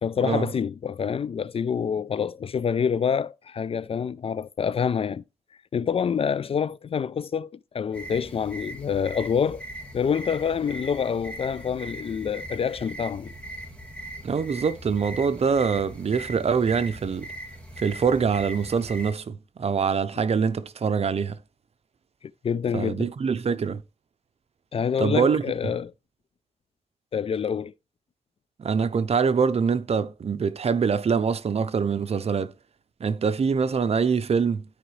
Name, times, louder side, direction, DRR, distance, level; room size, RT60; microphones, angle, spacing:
voice 1, 0.0-5.2 5.7-9.6 9.9-13.3 22.4-23.1 24.7-25.9 27.1-27.7, left 7 dB, 55° left, 0.4 m, -27 dB
sound 1, 7.9-19.1, right 1 dB, 10° left, 2.5 m, -40 dB
voice 2, 14.2-17.3 17.8-21.4 22.7-23.8 25.0-25.4 28.6-32.5 33.0-34.6, right 6 dB, 60° right, 0.7 m, -24 dB
12.5 x 4.9 x 3.2 m
wide cardioid pair, 85°, 12 cm